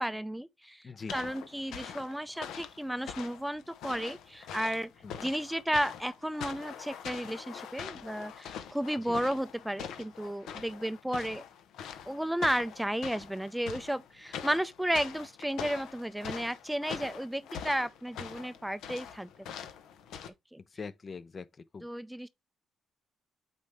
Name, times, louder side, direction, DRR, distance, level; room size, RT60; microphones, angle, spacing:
voice 1, 0.0-4.9 5.2-11.4 12.1-19.3 20.5-20.6 21.8-22.3, equal, 5° right, 0.4 m, -33 dB
sound 1, 1.1-20.3, left 8 dB, 85° left, 1.0 m, -44 dB
voice 2, 20.7-21.5 21.7-21.9, left 5 dB, 40° left, 0.6 m, -42 dB
8.4 x 4.2 x 3.4 m
cardioid pair, 90°, 0 cm